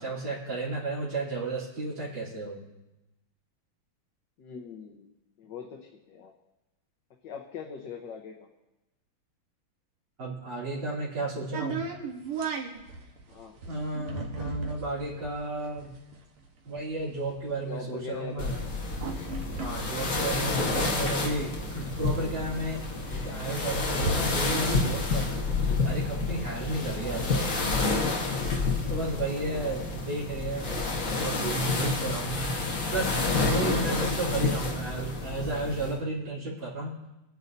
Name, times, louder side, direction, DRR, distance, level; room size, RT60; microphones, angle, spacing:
voice 1, 0.0-2.6 10.2-11.8 13.7-15.9 16.7-18.6 19.6-22.8 23.1-25.4 25.8-28.0 28.9-30.7 31.1-32.5 32.9-36.9, right 2 dB, 65° right, -7 dB, 3.9 m, -33 dB
voice 2, 4.4-5.1 5.4-5.8 6.1-6.3 7.2-8.5 13.3-13.6 17.7-18.4 20.4-20.7 27.0-27.5 29.5-29.8, left 6 dB, 60° left, 1 dB, 1.6 m, -42 dB
sound 1, 11.5-21.0 21.3-21.4 21.6-25.6, right 4 dB, 85° right, 2.1 m, -38 dB
sound 2, 18.4-36.0, left 3 dB, 40° left, 1.5 m, -29 dB
23.5 x 9.6 x 2.7 m, 0.97 s
omnidirectional pair, 2.3 m